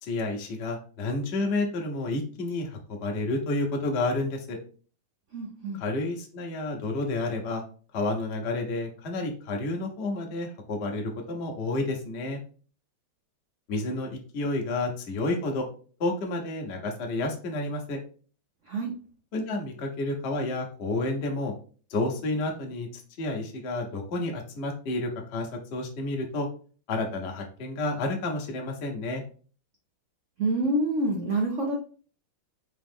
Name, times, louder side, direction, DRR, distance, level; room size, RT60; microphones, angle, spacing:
voice 1, 0.0-4.6 5.7-7.6 7.9-12.4 13.7-15.6 16.0-18.0 19.3-21.5 21.9-26.5 26.9-29.2, left 2 dB, 50° left, 1 dB, 0.8 m, -30 dB
voice 2, 5.3-5.8 18.7-18.9 30.4-31.8, right 2 dB, 85° right, -1 dB, 0.6 m, -27 dB
5.0 x 3.0 x 3.5 m, 0.40 s
omnidirectional pair, 2.3 m